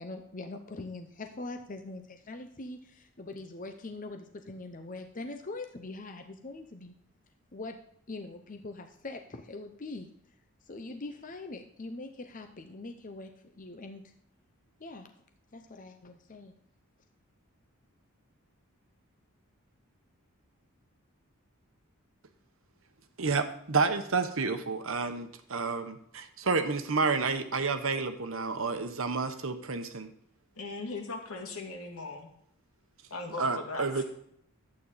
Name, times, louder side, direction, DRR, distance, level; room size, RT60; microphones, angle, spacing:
voice 1, 0.0-6.9 7.5-7.8 8.1-10.1 10.7-14.0 14.8-15.1 15.5-16.5, left 2 dB, 35° left, 6 dB, 0.7 m, -42 dB
voice 2, 23.2-30.1 33.4-34.0, right 4 dB, 65° right, 9 dB, 1.0 m, -30 dB
voice 3, 30.6-32.3 33.1-34.0, left 3 dB, 75° left, 1 dB, 2.3 m, -39 dB
11.5 x 8.6 x 4.1 m, 0.71 s
head